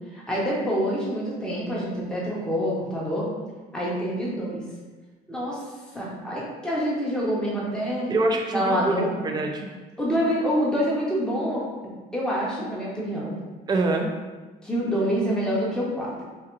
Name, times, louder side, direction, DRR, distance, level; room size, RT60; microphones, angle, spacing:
voice 1, 0.1-3.3 3.7-4.6 5.3-5.6 5.9-8.1 8.5-9.1 10.0-11.7 12.1-13.3 14.6-16.2, equal, 5° left, -6 dB, 1.1 m, -26 dB
voice 2, 8.1-9.7 13.7-14.1, right 2 dB, 25° right, 2 dB, 0.5 m, -25 dB
5.6 x 2.2 x 3.2 m, 1.3 s
cardioid pair, 110°, 17 cm